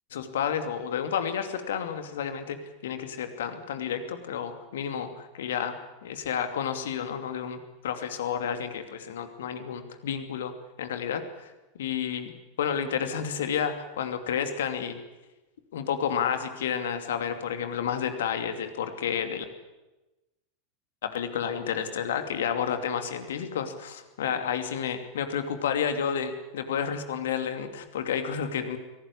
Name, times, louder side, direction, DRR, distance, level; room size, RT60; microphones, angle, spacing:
voice 1, 0.1-2.6 2.8-5.8 6.0-10.5 10.8-12.3 12.6-15.0 15.7-19.5 21.0-28.8, left 8 dB, 65° left, 8 dB, 2.7 m, -31 dB
24.0 x 18.0 x 9.8 m, 1.1 s
figure-of-eight pair, 85°, 0 cm